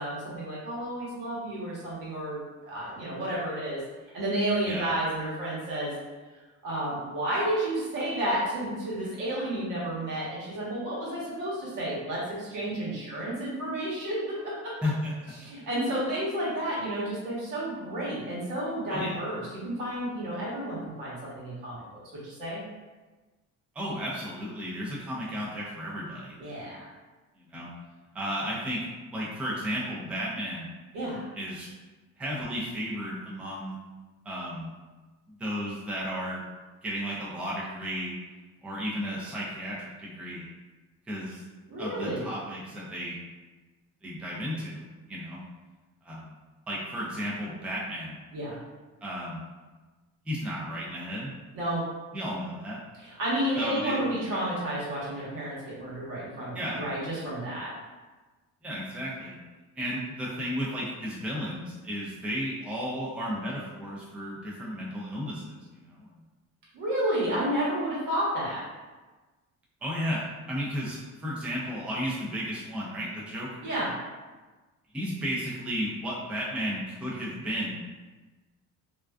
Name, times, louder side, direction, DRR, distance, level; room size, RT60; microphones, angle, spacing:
voice 1, 0.0-2.4 2.7-3.8 4.1-5.9 6.6-14.7 15.4-21.8 22.2-22.6 26.4-26.9 30.9-31.3 41.7-42.3 48.3-48.6 51.5-51.8 53.0-57.7 66.7-68.6 73.6-73.9, right 1 dB, 70° right, -6 dB, 1.1 m, -31 dB
voice 2, 14.8-15.1 18.9-19.2 23.7-26.4 27.3-27.7 28.1-30.7 31.4-31.7 32.2-33.8 34.2-34.7 35.4-36.4 36.8-38.1 38.6-40.4 41.1-41.4 41.8-43.2 44.0-44.8 45.1-45.4 46.0-46.3 46.7-48.2 49.0-49.4 50.3-51.3 52.1-52.8 53.6-54.0 56.5-56.8 58.6-59.4 59.8-66.1 69.8-73.7 74.9-77.8, equal, 5° right, -5 dB, 0.3 m, -33 dB
2.4 x 2.2 x 2.2 m, 1.2 s
cardioid pair, 135°, 33 cm